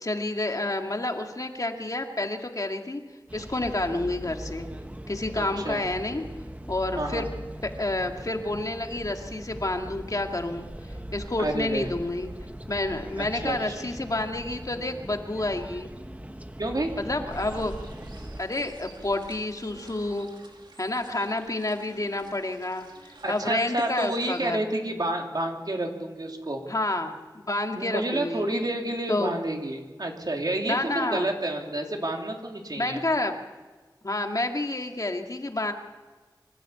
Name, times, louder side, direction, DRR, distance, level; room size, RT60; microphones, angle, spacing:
voice 1, 0.0-3.0 3.3-4.7 5.1-6.2 6.7-7.3 7.6-12.3 12.7-15.9 17.0-17.7 18.4-20.3 20.8-24.7 26.7-28.5 29.1-29.3 30.7-31.3 32.8-33.3 34.0-35.7, left 2 dB, 45° left, 4 dB, 2.1 m, -29 dB
sound 1, 3.3-18.4, right 1 dB, 20° right, 1.1 m, -40 dB
voice 2, 5.4-5.8 7.0-7.3 11.4-11.9 13.2-13.7 16.6-16.9 23.2-26.6 27.7-33.0, right 1 dB, 60° right, 2 dB, 3.0 m, -30 dB
sound 2, 17.3-24.4, right 2 dB, 75° right, 2.5 m, -49 dB
25.0 x 13.5 x 8.4 m, 1.3 s
wide cardioid pair, 50°, 8 cm